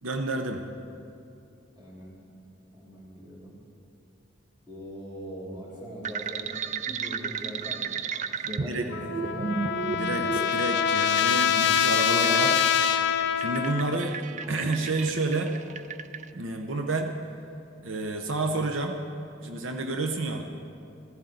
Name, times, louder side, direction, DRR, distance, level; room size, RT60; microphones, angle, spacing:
voice 1, 0.0-0.6 8.4-8.9 9.8-12.6 13.4-14.2 14.5-15.5 16.3-17.2 17.8-19.0 19.4-20.4, right 2 dB, 85° right, 4 dB, 0.8 m, -29 dB
voice 2, 1.8-2.1 2.7-3.6 4.7-7.9 8.4-9.5, equal, 20° right, -6 dB, 3.2 m, -41 dB
sound 1, 6.0-16.2, right 6 dB, 40° right, 0.4 m, -34 dB
Trumpet, 8.9-14.1, left 9 dB, 60° left, 0.4 m, -25 dB
15.0 x 14.0 x 3.9 m, 2.6 s
head